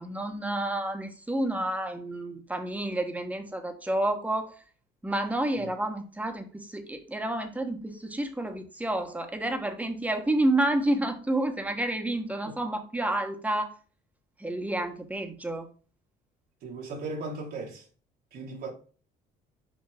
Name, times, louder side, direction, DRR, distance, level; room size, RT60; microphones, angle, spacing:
voice 1, 0.0-4.5 5.0-13.7 14.4-15.7, right 1 dB, 10° right, 1.3 m, -29 dB
voice 2, 16.6-17.9 18.3-18.7, right 3 dB, 70° right, 2.0 m, -37 dB
5.8 x 5.2 x 3.4 m
cardioid pair, 110°, 17 cm